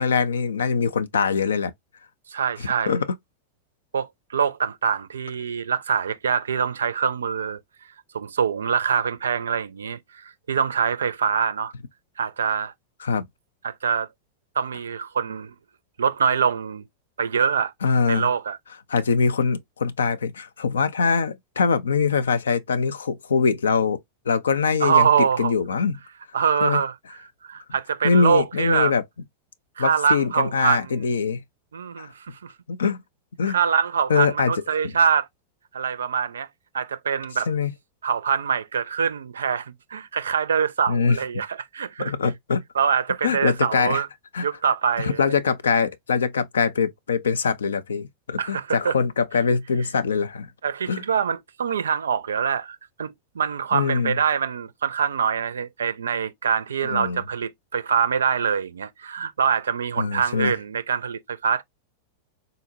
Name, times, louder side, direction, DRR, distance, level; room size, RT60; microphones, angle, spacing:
voice 1, 0.0-1.7 2.9-3.0 13.0-13.3 17.8-18.3 18.9-24.0 24.3-25.1 25.4-25.9 26.6-26.8 28.0-29.0 29.8-31.4 32.0-32.1 32.7-33.0 33.4-33.6 34.1-34.5 34.8-34.9 37.5-37.7 40.9-41.2 42.0-42.6 43.2-44.0 44.3-44.4 45.0-50.5 50.9-51.0 53.7-54.2 56.8-57.2 60.0-60.5, left 5 dB, 70° left, 0.4 m, -23 dB
voice 2, 2.3-3.0 3.9-7.6 8.1-11.7 12.2-12.7 13.6-14.1 14.6-15.5 16.0-16.8 17.2-17.7 18.1-18.6 24.8-25.5 26.3-26.9 27.4-28.9 29.8-31.0 31.7-32.5 33.5-35.3 35.7-36.5 36.7-37.5 38.0-42.1 42.7-44.1 44.4-45.4 48.4-48.9 50.6-61.6, right 7 dB, 70° right, 0.4 m, -24 dB
3.8 x 2.1 x 2.6 m
figure-of-eight pair, 90°, 0 cm